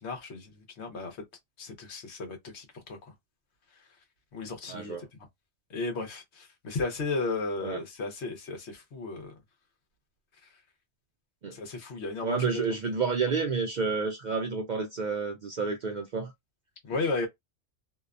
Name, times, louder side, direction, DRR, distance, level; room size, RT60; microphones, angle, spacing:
voice 1, 0.0-1.2 1.6-3.1 3.8-3.9 4.3-4.9 5.7-9.3 10.4-10.5 11.5-12.7 16.8-17.3, left 3 dB, 70° left, 1.1 m, -34 dB
voice 2, 4.7-5.1 7.6-7.8 11.4-11.6 12.2-16.3, right 5 dB, 60° right, 0.5 m, -30 dB
2.7 x 2.2 x 2.4 m
omnidirectional pair, 1.2 m